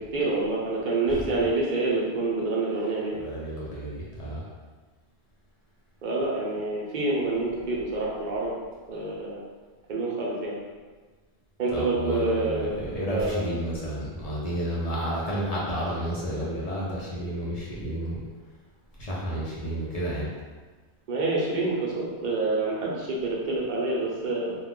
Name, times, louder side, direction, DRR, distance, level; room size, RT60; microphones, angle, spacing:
voice 1, 0.1-3.2 6.0-8.5 8.9-9.4 9.9-10.6 11.6-12.8 13.1-13.6 21.1-24.6, right 2 dB, 50° right, -4 dB, 0.7 m, -27 dB
voice 2, 3.2-4.4 11.7-18.2 19.0-20.3, equal, 40° left, -7 dB, 0.6 m, -31 dB
2.4 x 2.2 x 3.7 m, 1.4 s
omnidirectional pair, 1.1 m